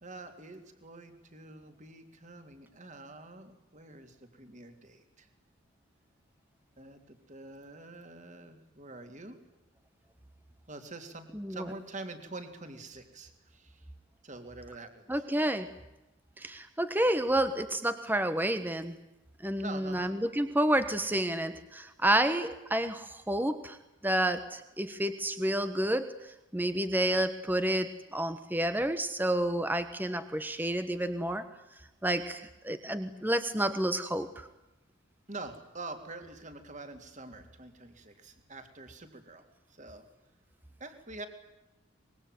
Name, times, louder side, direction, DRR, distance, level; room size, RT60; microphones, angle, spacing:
voice 1, 0.0-5.3 6.8-9.4 10.7-13.9 14.2-15.2 19.6-20.1 35.3-39.4 39.7-40.0 40.8-41.3, right 2 dB, 35° right, 7 dB, 3.4 m, -46 dB
voice 2, 11.3-11.7 15.1-15.7 16.4-19.0 19.4-23.8 24.0-31.5 32.0-34.5, right 1 dB, 10° right, 10 dB, 1.2 m, -30 dB
25.0 x 22.0 x 9.4 m, 0.95 s
head